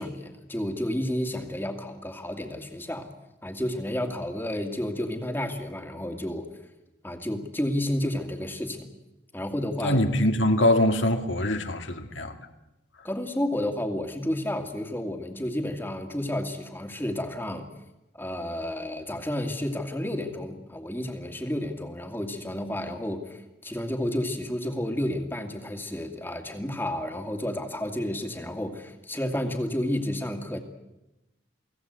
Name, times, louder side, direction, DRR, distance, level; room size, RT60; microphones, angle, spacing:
voice 1, 0.0-3.1 3.4-6.5 7.0-8.9 9.3-10.0 13.0-17.7 18.1-30.6, left 1 dB, 10° left, 2.2 m, -31 dB
voice 2, 9.8-12.4, left 1 dB, 80° left, 2.2 m, -23 dB
29.0 x 19.0 x 8.1 m
head